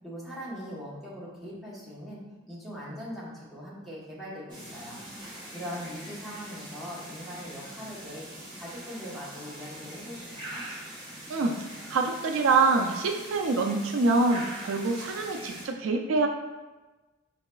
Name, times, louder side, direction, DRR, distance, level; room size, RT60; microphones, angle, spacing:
voice 1, 0.0-2.2 2.5-5.0 5.5-8.3 8.5-10.6, equal, ahead, -7 dB, 0.9 m, -41 dB
sound 1, 4.5-15.7, right 1 dB, 25° right, 1.1 m, -43 dB
voice 2, 11.9-16.3, right 3 dB, 70° right, 3 dB, 0.4 m, -25 dB
4.6 x 4.0 x 2.2 m, 1.2 s
head